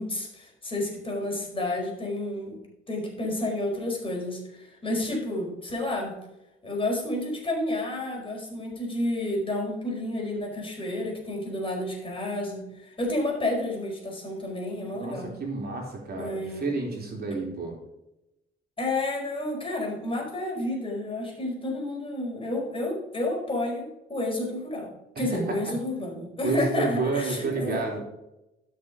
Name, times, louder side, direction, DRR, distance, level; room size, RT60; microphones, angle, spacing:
voice 1, 0.0-2.6 2.9-6.2 6.6-15.3 16.1-16.6 17.4-17.5 18.8-28.0, left 1 dB, 25° left, 0 dB, 4.9 m, -30 dB
voice 2, 14.9-17.7 25.1-25.6 26.4-28.0, right 3 dB, 50° right, 1 dB, 3.3 m, -30 dB
13.0 x 6.6 x 5.0 m, 0.91 s
cardioid pair, 90°, 20 cm